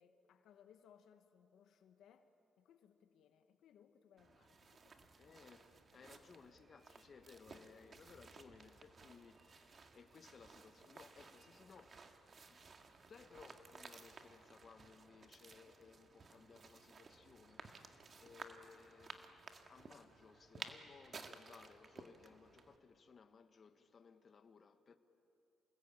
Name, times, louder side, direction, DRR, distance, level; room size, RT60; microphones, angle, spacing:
voice 1, 0.0-2.3 2.6-5.1 6.0-6.1, left 8 dB, 75° left, 1.3 m, -67 dB
sound 1, 4.2-22.8, right 4 dB, 40° right, 1.8 m, -57 dB
voice 2, 5.2-19.2 19.7-25.0, left 5 dB, 45° left, 1.3 m, -61 dB
28.5 x 19.0 x 8.8 m
cardioid pair, 90°, 0 cm